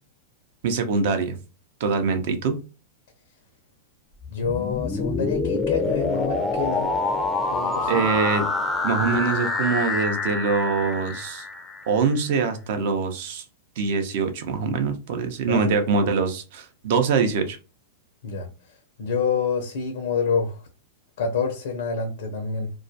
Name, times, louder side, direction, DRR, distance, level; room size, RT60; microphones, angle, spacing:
voice 1, 0.6-1.4 1.8-2.6 7.9-8.5 8.8-11.5 11.9-13.4 13.8-17.6, right 5 dB, 60° right, 0.6 m, -24 dB
sound 1, 4.2-12.1, left 3 dB, 15° left, 0.4 m, -26 dB
voice 2, 4.3-6.9 7.5-8.1 15.5-15.6 18.2-18.5 19.0-20.6 21.2-22.7, left 5 dB, 75° left, 0.5 m, -27 dB
2.3 x 2.2 x 2.6 m
hypercardioid pair, 115°, 0 cm